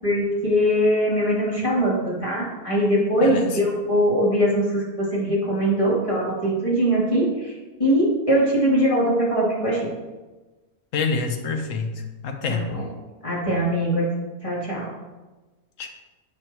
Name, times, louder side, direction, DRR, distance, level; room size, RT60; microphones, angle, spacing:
voice 1, 0.0-7.5 7.8-9.9 12.5-12.9 13.2-14.1 14.4-14.9, equal, 20° left, -7 dB, 3.1 m, -21 dB
voice 2, 3.2-3.6 10.9-11.9 12.2-12.7 15.8-15.9, left 4 dB, 65° left, 4 dB, 1.3 m, -26 dB
12.0 x 7.5 x 3.0 m, 1.2 s
omnidirectional pair, 1.5 m